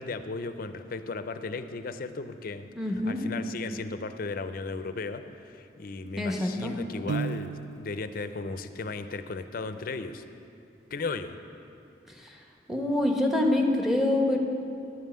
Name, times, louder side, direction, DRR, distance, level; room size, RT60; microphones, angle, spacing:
voice 1, 0.0-2.7 3.1-10.2 10.9-11.4, left 3 dB, 55° left, 10 dB, 0.5 m, -36 dB
voice 2, 2.8-3.2 6.2-6.7 12.2-12.3 12.7-14.4, left 1 dB, ahead, 0 dB, 1.0 m, -25 dB
Piano, 7.1-8.1, right 4 dB, 80° right, 0.4 m, -33 dB
11.5 x 5.5 x 7.6 m, 2.6 s
head